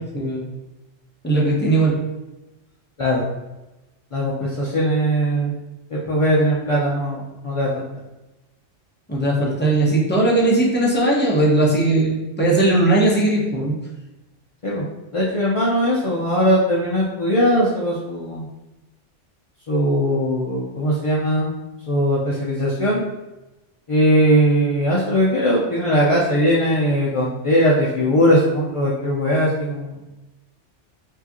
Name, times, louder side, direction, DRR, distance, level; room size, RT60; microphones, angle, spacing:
voice 1, 0.1-0.5 1.2-1.9 9.1-13.7, right 2 dB, 10° left, -5 dB, 0.8 m, -18 dB
voice 2, 4.1-5.5 5.9-7.8 14.6-14.9 15.1-18.5 19.7-21.5 21.9-23.0 23.9-29.9, equal, 45° left, -5 dB, 0.4 m, -19 dB
4.7 x 2.8 x 2.9 m, 1.0 s
omnidirectional pair, 1.3 m